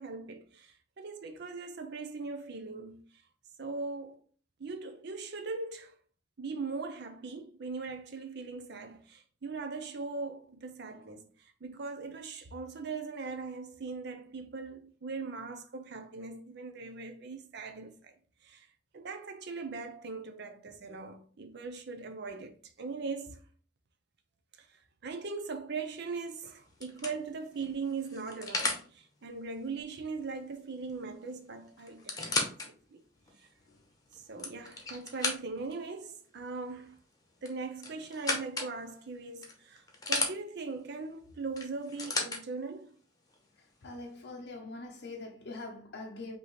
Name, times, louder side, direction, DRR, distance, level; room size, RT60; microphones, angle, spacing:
voice 1, 0.0-3.2 3.6-4.2 4.6-6.0 6.4-18.1 18.4-18.7 18.9-23.4 24.6-33.0 33.4-33.5 34.1-37.0 37.4-42.9, right 4 dB, 60° right, 0.6 m, -40 dB
sound 1, 25.9-26.2 26.8-28.9 30.9-31.0 31.3-31.4 31.9-32.7 33.3-33.4 34.1-35.7 37.4-38.7 39.4-40.3 41.6-42.4 43.3-43.4, left 3 dB, 20° left, 0.9 m, -34 dB
voice 2, 43.8-46.4, left 2 dB, 60° left, 0.6 m, -43 dB
5.2 x 2.8 x 3.0 m
head